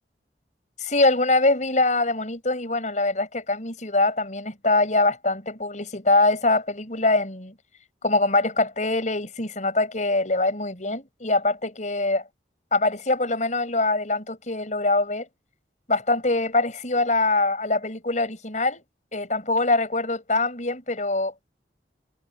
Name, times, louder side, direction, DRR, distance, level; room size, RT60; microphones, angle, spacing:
voice 1, 0.8-7.5 8.0-12.2 12.7-15.3 15.9-18.8 19.1-21.3, left 2 dB, 45° left, 6.5 m, -23 dB
head